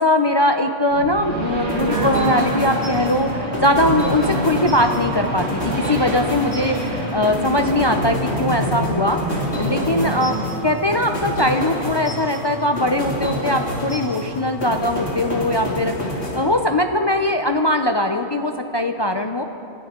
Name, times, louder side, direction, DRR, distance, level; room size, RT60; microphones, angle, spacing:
voice 1, 0.0-16.0 16.3-19.4, left 1 dB, 35° left, 5 dB, 0.4 m, -21 dB
sound 1, 0.9-10.4, right 1 dB, 80° right, 2.5 m, -26 dB
sound 2, 1.7-17.0, equal, 80° left, 3.6 m, -28 dB
27.5 x 12.5 x 3.7 m, 3.0 s
omnidirectional pair, 1.1 m